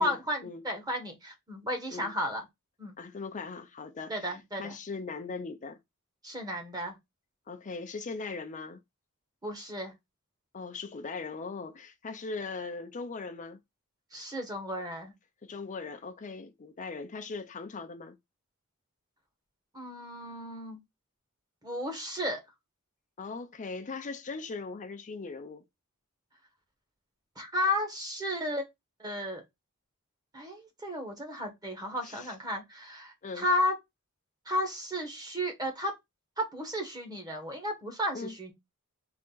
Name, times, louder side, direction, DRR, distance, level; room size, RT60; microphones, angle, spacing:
voice 1, 0.0-2.4 2.8-3.0 4.1-4.8 6.2-7.0 9.4-9.9 14.1-15.1 19.7-20.8 21.6-22.4 27.4-28.6 29.0-29.4 30.3-33.7 34.4-35.9 36.4-38.5, left 1 dB, 20° right, 1.3 m, -33 dB
voice 2, 3.0-5.8 7.5-8.8 10.5-13.6 15.4-18.2 23.2-25.6 32.0-32.3 33.2-33.4 38.1-38.3, left 4 dB, 35° left, 0.5 m, -39 dB
3.7 x 3.4 x 3.9 m
head